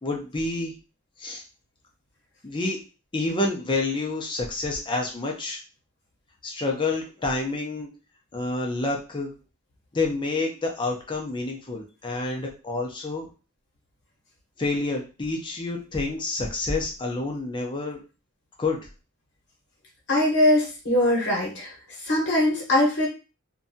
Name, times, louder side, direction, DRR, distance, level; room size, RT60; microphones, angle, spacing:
voice 1, 0.0-0.7 1.2-1.4 2.4-2.8 3.1-5.6 6.4-7.9 8.3-9.3 9.9-13.3 14.6-18.0 18.6-18.8, left 2 dB, 20° left, 1 dB, 0.5 m, -28 dB
voice 2, 20.1-21.7 22.0-23.1, left 1 dB, 55° left, -3 dB, 1.0 m, -21 dB
2.6 x 2.2 x 2.6 m, 0.32 s
head